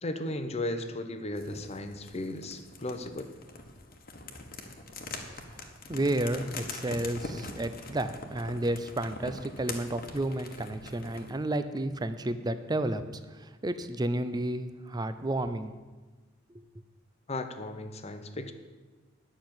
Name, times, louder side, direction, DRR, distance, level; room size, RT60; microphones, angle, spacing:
voice 1, 0.0-3.4 17.3-18.5, left 1 dB, 30° left, 8 dB, 0.8 m, -35 dB
sound 1, 1.4-11.4, left 3 dB, 50° left, 1.3 m, -43 dB
voice 2, 5.6-13.0 13.3-15.7, right 1 dB, 20° right, 11 dB, 0.5 m, -31 dB
9.8 x 6.1 x 8.7 m, 1.3 s
head